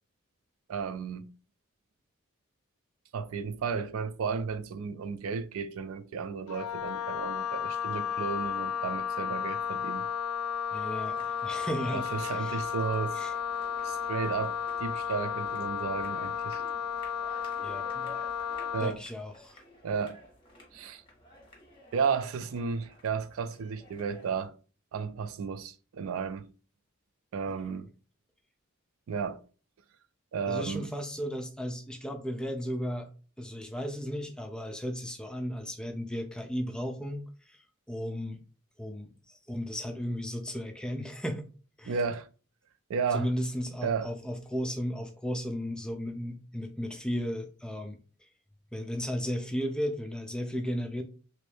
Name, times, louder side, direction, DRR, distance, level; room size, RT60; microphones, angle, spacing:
voice 1, 0.7-1.3 3.1-10.1 11.9-13.2 13.8-16.6 18.7-19.0 19.8-20.2 20.7-21.0 21.9-24.5 24.9-26.5 27.3-27.9 29.1-29.4 30.3-30.9 41.8-42.3 42.9-43.3 43.8-44.1, right 5 dB, 70° right, 0.3 m, -33 dB
Wind instrument woodwind instrument, 6.5-19.0, left 7 dB, 90° left, 0.3 m, -33 dB
voice 2, 10.7-12.6 13.1-13.3 17.6-18.1 18.8-19.6 27.5-27.8 30.5-33.1 33.4-37.2 37.9-38.4 38.8-41.4 41.8-41.9 43.1-48.0 48.7-51.0, equal, 5° left, 0.4 m, -35 dB
sound 1, 11.0-24.5, equal, 25° left, 1.2 m, -53 dB
3.2 x 2.6 x 3.2 m
head